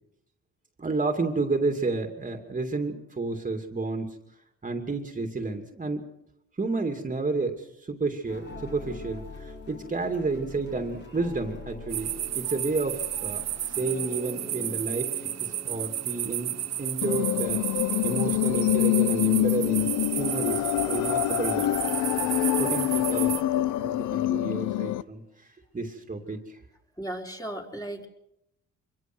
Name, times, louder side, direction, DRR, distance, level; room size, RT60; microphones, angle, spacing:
voice 1, 0.8-4.2 4.6-6.0 6.6-13.4 13.8-15.1 15.4-17.6 18.0-21.8 22.6-26.6, right 3 dB, 25° right, 5 dB, 2.6 m, -31 dB
sound 1, 8.3-18.7, left 3 dB, 35° left, 4.8 m, -45 dB
sound 2, 11.9-23.4, right 12 dB, 60° right, 0.8 m, -32 dB
sound 3, 17.0-25.0, left 14 dB, 80° left, 0.8 m, -26 dB
voice 2, 27.0-28.1, right 1 dB, 10° left, 1 dB, 4.3 m, -35 dB
25.5 x 22.5 x 6.2 m, 0.80 s
cardioid pair, 90°, 30 cm